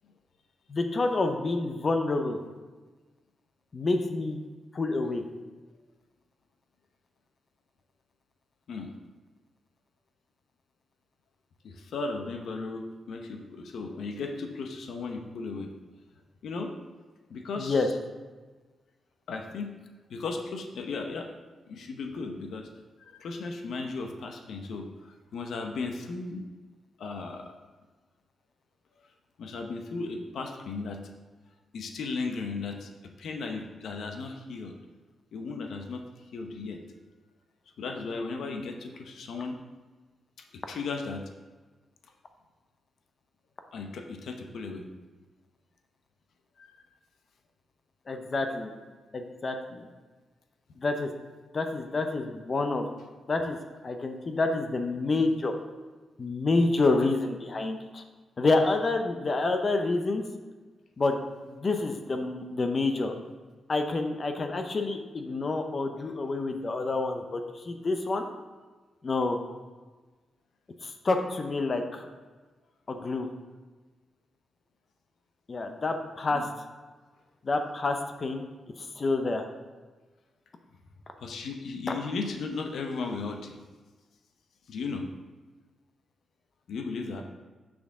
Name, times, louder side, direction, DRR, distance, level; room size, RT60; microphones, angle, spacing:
voice 1, 0.7-2.4 3.7-4.4 4.7-5.2 17.6-17.9 48.1-48.7 49.1-49.9 50.8-51.1 51.5-52.9 53.3-53.6 53.8-55.5 56.2-58.0 58.4-60.2 61.0-61.2 61.4-63.1 63.7-68.3 69.0-69.4 70.8-72.1 72.9-73.3 75.5-76.5 77.4-78.5 78.8-79.5 81.9-82.0, left 3 dB, 35° left, 6 dB, 0.6 m, -28 dB
voice 2, 11.6-15.7 16.4-16.7 17.3-17.9 19.3-19.7 20.1-21.4 21.7-22.7 23.0-26.4 27.0-27.5 29.4-31.0 31.7-34.7 35.3-36.0 36.3-36.8 37.8-39.6 40.5-41.2 43.7-44.9 46.6-46.8 76.3-76.5 81.2-83.6 84.7-85.1 86.7-87.2, left 4 dB, 75° left, 4 dB, 0.7 m, -36 dB
6.1 x 6.0 x 3.6 m, 1.3 s
wide cardioid pair, 125°, 0 cm